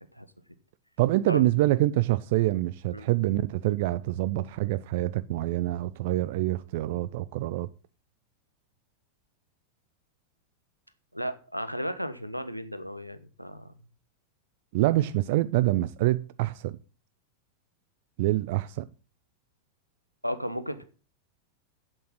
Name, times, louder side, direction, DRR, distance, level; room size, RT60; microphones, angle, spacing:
voice 1, 1.0-7.7 14.7-16.8 18.2-18.9, right 16 dB, 50° right, 0.4 m, -26 dB
voice 2, 11.1-13.7 20.2-20.8, equal, 90° right, 1.1 m, -34 dB
8.5 x 7.9 x 7.5 m
figure-of-eight pair, 90°, 0 cm